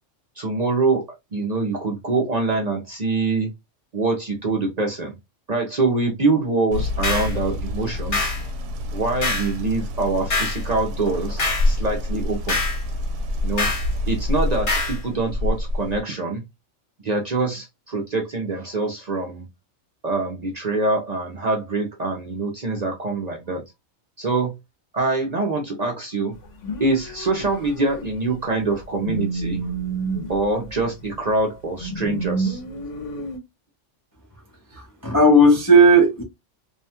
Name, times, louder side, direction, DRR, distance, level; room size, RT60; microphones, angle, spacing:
voice 1, 0.4-1.0 1.3-3.5 3.9-5.2 5.5-8.3 8.9-12.6 13.4-13.7 14.1-16.4 17.0-19.4 20.0-23.6 24.2-24.5 24.9-26.3 26.8-29.6 30.3-32.6, right 3 dB, 45° right, 0.6 m, -24 dB
sound 1, 6.7-16.0, left 1 dB, 90° right, 0.9 m, -27 dB
sound 2, 7.0-7.3 8.1-8.4 9.2-9.5 10.3-10.6 11.4-11.7 12.5-12.8 13.6-13.9 14.7-15.0, left 3 dB, 65° left, 1.4 m, -24 dB
sound 3, 26.4-28.3 28.6-31.3 31.8-33.4, right 3 dB, 85° left, 1.1 m, -30 dB
voice 2, 34.7-36.2, right 1 dB, 25° left, 0.4 m, -14 dB
2.7 x 2.2 x 2.7 m
omnidirectional pair, 1.2 m